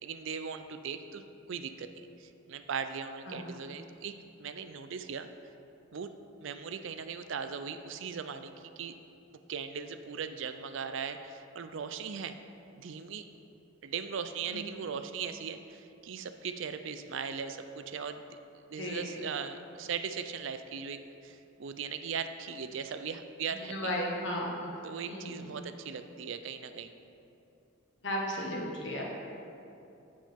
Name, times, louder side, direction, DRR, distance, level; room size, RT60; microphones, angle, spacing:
voice 1, 0.0-5.3 5.9-6.1 6.4-8.9 9.5-12.4 12.8-13.2 13.8-18.2 18.7-23.9 24.8-26.9, right 6 dB, 60° right, 9 dB, 0.4 m, -39 dB
voice 2, 23.7-24.6 25.1-25.3 28.0-29.1, equal, 55° left, -2 dB, 1.5 m, -34 dB
14.5 x 5.2 x 3.5 m, 2.7 s
head